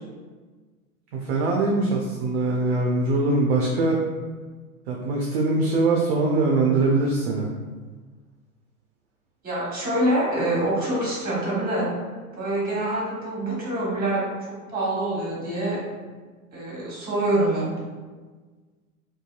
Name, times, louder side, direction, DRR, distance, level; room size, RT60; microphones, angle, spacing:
voice 1, 1.1-4.0 4.9-7.5, right 2 dB, 45° right, -2 dB, 0.4 m, -22 dB
voice 2, 9.4-11.9 12.4-14.2 14.7-15.8 16.5-17.7, right 1 dB, 20° right, -7 dB, 1.3 m, -25 dB
2.6 x 2.3 x 2.3 m, 1.4 s
figure-of-eight pair, 90°, 44 cm